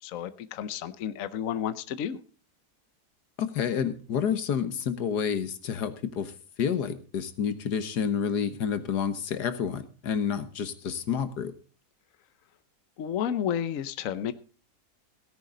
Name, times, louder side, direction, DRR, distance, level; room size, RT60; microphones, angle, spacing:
voice 1, 0.0-2.2 13.0-14.3, left 9 dB, 60° left, 13 dB, 1.1 m, -31 dB
voice 2, 3.4-6.3 6.6-11.5, left 7 dB, 85° left, 11 dB, 1.8 m, -29 dB
17.0 x 10.5 x 3.9 m, 0.38 s
omnidirectional pair, 1.7 m